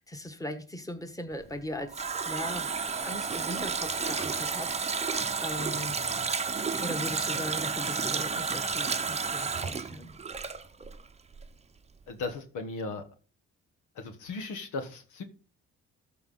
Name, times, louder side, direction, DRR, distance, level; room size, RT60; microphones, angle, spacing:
voice 1, 0.0-2.7 3.0-6.0 6.8-10.2, left 1 dB, 10° left, 7 dB, 1.6 m, -39 dB
Water tap faucet, 1.4-11.1 11.3-11.5, right 5 dB, 20° right, 0.7 m, -31 dB
voice 2, 12.1-13.0 13.9-15.2, left 3 dB, 85° left, 8 dB, 1.6 m, -36 dB
14.0 x 4.6 x 5.6 m, 0.40 s
cardioid pair, 90°, 30 cm